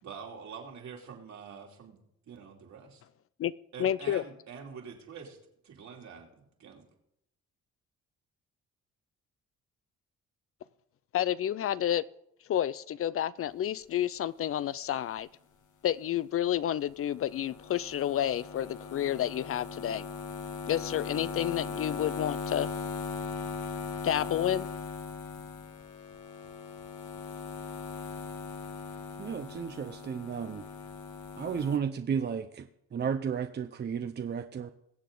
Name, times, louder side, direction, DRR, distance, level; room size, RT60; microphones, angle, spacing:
voice 1, 0.0-2.0 2.3-3.0 3.7-5.4 5.6-6.8, right 6 dB, 65° right, 0 dB, 2.8 m, -46 dB
voice 2, 3.8-4.2 11.1-12.1 12.5-15.3 15.8-20.1 20.7-22.7 24.0-24.7, left 11 dB, 50° left, 18 dB, 0.4 m, -30 dB
sound 1, 16.9-31.8, left 5 dB, 80° left, 1.5 m, -39 dB
voice 3, 29.2-30.7 31.4-34.7, right 7 dB, 35° right, 8 dB, 0.6 m, -33 dB
22.0 x 7.5 x 3.8 m, 0.78 s
cardioid pair, 90°, 30 cm